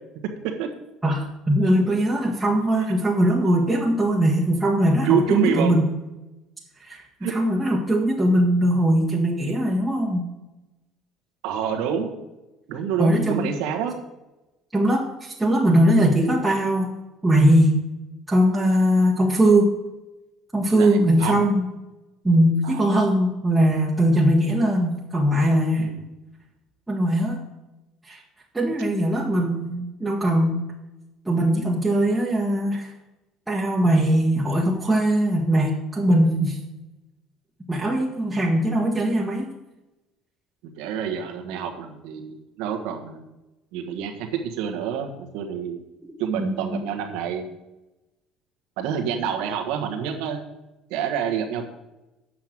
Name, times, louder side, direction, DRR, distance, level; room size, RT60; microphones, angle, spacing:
voice 1, 1.0-5.9 6.8-10.3 13.0-13.5 14.7-16.9 17.2-17.8 18.3-19.7 20.5-21.6 22.2-25.9 26.9-27.4 28.1-28.2 28.5-30.6 31.2-32.9 33.5-36.6 37.7-39.5 46.0-46.1 46.4-46.8, right 1 dB, 10° right, -4 dB, 1.5 m, -20 dB
voice 2, 5.1-5.7 7.2-7.3 11.4-12.1 12.7-13.9 20.7-21.4 22.6-22.9 25.8-25.9 40.8-43.3 43.7-45.8 46.2-47.5 48.8-50.4 50.9-51.7, right 7 dB, 80° right, 3 dB, 1.5 m, -27 dB
7.6 x 5.8 x 7.6 m, 1.0 s
supercardioid pair, 105°, 0 cm